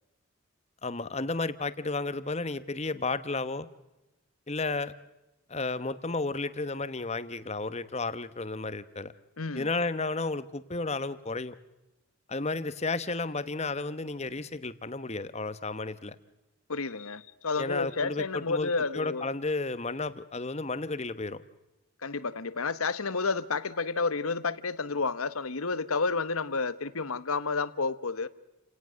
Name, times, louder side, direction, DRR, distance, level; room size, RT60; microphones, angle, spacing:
voice 1, 0.8-3.7 4.5-4.9 5.5-9.1 9.5-11.5 12.3-16.2 17.6-21.4, left 3 dB, 30° left, 13 dB, 1.0 m, -32 dB
voice 2, 9.4-9.7 16.7-19.2 22.0-28.3, left 4 dB, 90° left, 15 dB, 1.2 m, -30 dB
30.0 x 18.0 x 6.4 m, 0.97 s
head